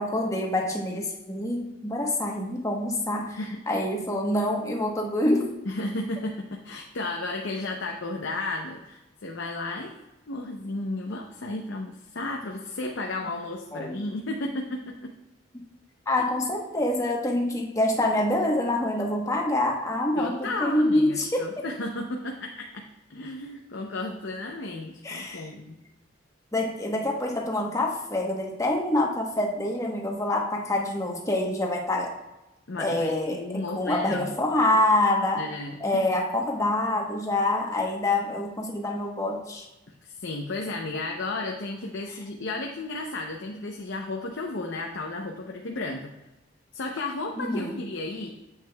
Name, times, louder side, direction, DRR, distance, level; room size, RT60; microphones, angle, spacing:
voice 1, 0.0-3.4 3.7-5.5 13.7-14.0 16.1-21.6 25.0-25.5 26.5-32.1 32.8-35.5 35.8-39.6 47.4-47.8, left 1 dB, 15° left, 0 dB, 1.0 m, -26 dB
voice 2, 5.7-9.9 10.3-15.1 20.2-22.8 23.1-25.8 32.7-34.3 35.4-36.1 40.0-46.1 46.7-48.3, left 2 dB, 85° left, 1 dB, 0.7 m, -33 dB
9.2 x 7.4 x 2.3 m, 0.99 s
head